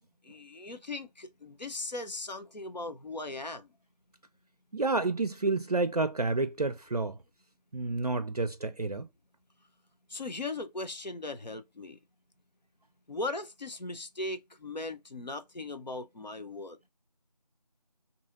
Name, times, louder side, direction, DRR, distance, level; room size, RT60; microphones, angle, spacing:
voice 1, 0.2-3.7 10.1-12.0 13.1-16.8, left 2 dB, 85° left, 0.7 m, -38 dB
voice 2, 4.7-7.2 7.7-9.1, right 3 dB, 60° right, 0.4 m, -29 dB
2.7 x 2.7 x 2.4 m
figure-of-eight pair, 175°, 21 cm